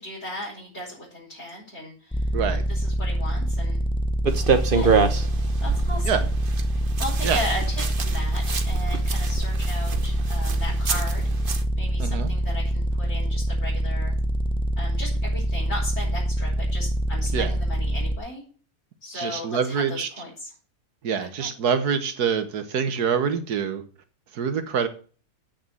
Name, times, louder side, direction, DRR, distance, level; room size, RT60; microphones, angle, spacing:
voice 1, 0.0-3.8 4.5-5.0 5.6-6.2 7.0-14.1 14.8-18.4 19.0-20.5 21.2-21.5, left 1 dB, 45° left, 5.5 m, -36 dB
sound 1, 2.1-18.2, right 1 dB, 5° left, 0.6 m, -25 dB
sound 2, 4.2-11.6, right 5 dB, 40° right, 1.1 m, -27 dB
voice 2, 12.0-12.3 17.3-17.5 19.1-20.1 21.0-23.8 24.3-24.9, right 6 dB, 90° right, 1.7 m, -25 dB
8.7 x 6.6 x 7.6 m
omnidirectional pair, 1.6 m